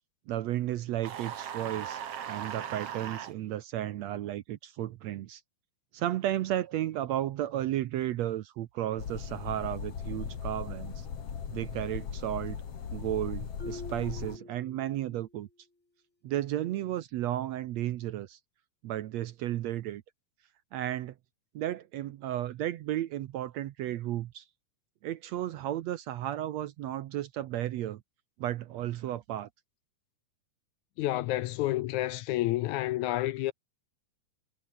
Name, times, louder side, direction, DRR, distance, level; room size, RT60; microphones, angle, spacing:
voice 1, 0.3-2.0 2.3-5.4 5.9-11.1 11.5-12.6 12.9-15.5 16.2-18.4 18.8-20.0 20.7-21.2 21.6-24.4 25.0-28.0 28.4-29.5, right 13 dB, 70° right, 1.8 m, -33 dB
sound 1, 1.0-3.3, right 9 dB, 55° right, 2.3 m, -38 dB
sound 2, 9.0-14.4, left 7 dB, 50° left, 3.2 m, -38 dB
Marimba xylophone, 13.6-15.3, left 2 dB, 20° left, 5.1 m, -45 dB
voice 2, 31.0-33.5, left 16 dB, 80° left, 1.9 m, -29 dB
omnidirectional pair, 3.7 m